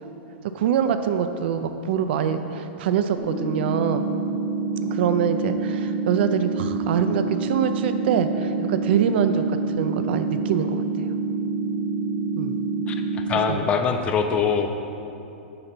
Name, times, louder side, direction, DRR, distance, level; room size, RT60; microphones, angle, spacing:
voice 1, 0.5-4.0 4.9-10.8 12.4-12.6 13.5-13.7, right 8 dB, 60° right, 9 dB, 0.4 m, -24 dB
sound 1, 3.2-13.2, right 4 dB, 40° right, 1.0 m, -27 dB
voice 2, 12.9-14.7, left 6 dB, 20° left, 6 dB, 0.3 m, -23 dB
5.4 x 3.8 x 5.9 m, 2.8 s
supercardioid pair, 155°, 6 cm